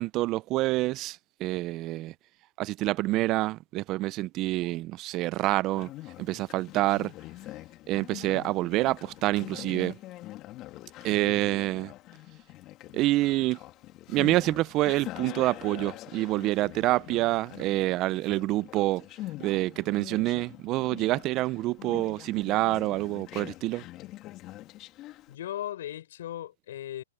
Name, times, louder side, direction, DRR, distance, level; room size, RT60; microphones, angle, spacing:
voice 1, 0.0-2.1 2.6-5.9 6.2-7.1 7.9-10.0 11.0-11.9 12.9-13.6 14.1-19.1 19.4-23.8, right 17 dB, 30° right, 0.6 m, -27 dB
Conversation, 5.7-25.4, left 16 dB, 30° left, 2.4 m, -44 dB
voice 2, 11.0-11.6 25.3-27.0, left 12 dB, 60° left, 6.1 m, -38 dB
hypercardioid pair, 135°, 0 cm